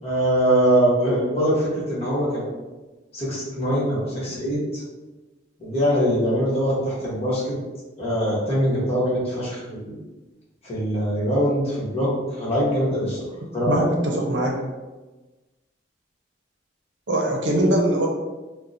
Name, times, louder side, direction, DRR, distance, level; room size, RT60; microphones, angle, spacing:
voice 1, 0.0-2.4 3.1-4.8 5.6-7.5 8.0-9.9 10.6-12.1 12.4-13.3 13.5-13.9, equal, 35° left, -7 dB, 1.1 m, -22 dB
voice 2, 13.7-14.6 17.1-18.1, right 1 dB, 70° right, 0 dB, 0.7 m, -21 dB
2.8 x 2.2 x 3.8 m, 1.2 s
head